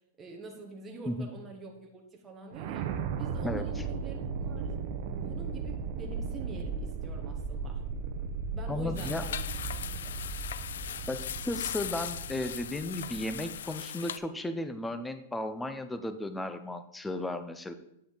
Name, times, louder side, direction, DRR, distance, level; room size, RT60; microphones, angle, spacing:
voice 1, 0.2-2.9 3.1-4.7 5.1-7.8 8.5-9.4 10.0-10.1, right 3 dB, 10° right, 0 dB, 1.0 m, -45 dB
sound 1, 2.5-13.6, right 5 dB, 45° right, 0.8 m, -36 dB
voice 2, 8.7-9.2 11.1-17.7, left 1 dB, 5° left, 10 dB, 0.5 m, -35 dB
sound 2, 9.0-14.2, left 9 dB, 80° left, 0.4 m, -39 dB
8.5 x 5.8 x 3.9 m, 0.80 s
supercardioid pair, 160°, 0 cm